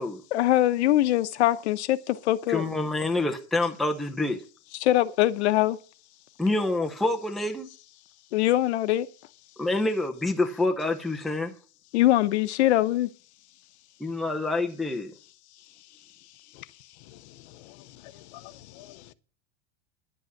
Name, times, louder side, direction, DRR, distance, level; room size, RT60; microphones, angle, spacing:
voice 1, 0.3-2.6 4.8-5.8 8.3-9.1 11.9-13.1, left 14 dB, 85° left, 1.0 m, -22 dB
voice 2, 2.5-4.4 6.4-7.7 9.6-11.5 14.0-15.1, left 2 dB, ahead, 0.6 m, -27 dB
voice 3, 18.0-19.0, left 16 dB, 45° left, 0.7 m, -48 dB
11.0 x 7.9 x 7.2 m
supercardioid pair, 175°, 32 cm